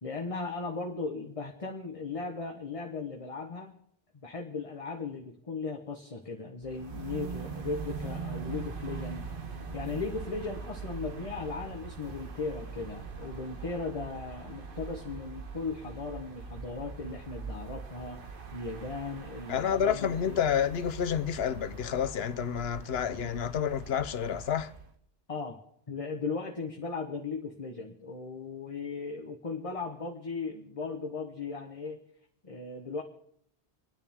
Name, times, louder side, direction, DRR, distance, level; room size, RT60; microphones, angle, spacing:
voice 1, 0.0-3.7 4.1-9.2 9.7-18.2 18.5-20.4 25.3-25.6 25.9-32.0 32.4-33.0, left 4 dB, 35° left, 1.1 m, -37 dB
sound 1, 6.6-24.9, right 5 dB, 55° right, 1.3 m, -42 dB
voice 2, 19.5-24.7, left 8 dB, 70° left, 0.9 m, -29 dB
29.0 x 9.9 x 3.5 m
omnidirectional pair, 1.1 m